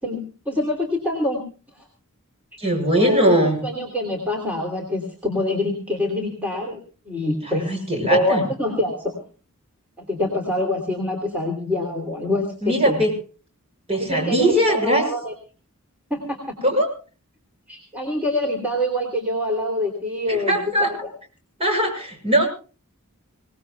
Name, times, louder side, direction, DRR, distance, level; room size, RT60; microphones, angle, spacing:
voice 1, 0.0-1.4 1.7-1.8 2.8-6.8 7.1-7.8 8.1-9.2 10.0-13.0 13.9-15.3 16.1-16.5 17.7-21.1, left 1 dB, 5° right, 0 dB, 3.2 m, -25 dB
voice 2, 2.6-3.6 7.6-8.4 12.6-13.1 13.9-15.0 16.6-16.9 20.3-20.9 21.6-22.5, equal, 30° right, 2 dB, 6.4 m, -20 dB
26.0 x 18.5 x 2.3 m, 0.37 s
head